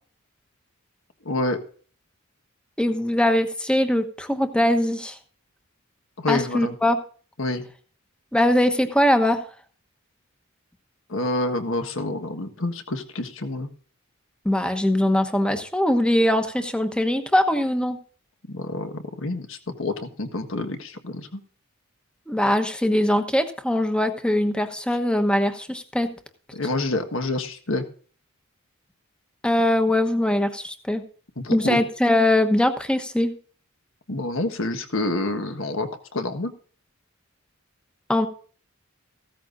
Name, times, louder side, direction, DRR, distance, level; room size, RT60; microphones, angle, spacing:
voice 1, 1.2-1.6 6.2-6.7 7.4-7.6 11.1-13.7 18.5-21.4 26.5-27.8 31.4-31.8 34.1-36.5, left 2 dB, 65° left, 8 dB, 1.5 m, -28 dB
voice 2, 2.8-5.2 6.3-7.0 8.3-9.4 14.4-18.0 22.3-26.1 29.4-31.0 31.5-33.3 38.1-38.3, left 1 dB, 5° left, 8 dB, 1.1 m, -21 dB
15.5 x 13.5 x 2.6 m, 0.44 s
head